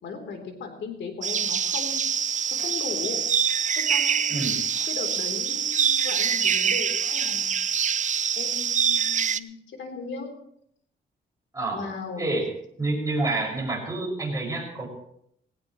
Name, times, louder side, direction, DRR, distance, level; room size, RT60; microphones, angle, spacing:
voice 1, 0.0-2.0 2.5-3.2 3.8-4.5 4.8-7.6 8.4-10.3 11.7-12.3, left 4 dB, 75° left, 5 dB, 3.5 m, -37 dB
sound 1, 1.2-9.4, right 7 dB, 40° right, 0.6 m, -25 dB
voice 2, 12.2-12.5 12.8-14.9, right 2 dB, 15° right, 0 dB, 5.9 m, -28 dB
18.5 x 18.0 x 3.1 m, 0.71 s
cardioid pair, 100°, 19 cm